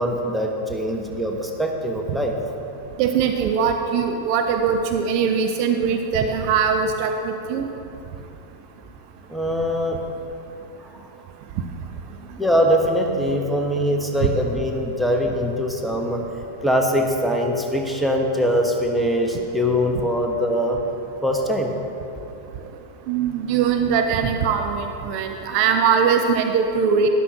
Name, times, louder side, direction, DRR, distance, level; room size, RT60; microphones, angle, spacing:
voice 1, 0.0-2.4 9.3-10.0 12.4-16.2 16.6-20.8 21.2-21.8, equal, ahead, 1 dB, 1.1 m, -22 dB
voice 2, 3.0-7.7 23.1-27.1, right 6 dB, 45° right, 5 dB, 0.6 m, -21 dB
12.5 x 11.0 x 3.0 m, 2.8 s
figure-of-eight pair, 90°, 0 cm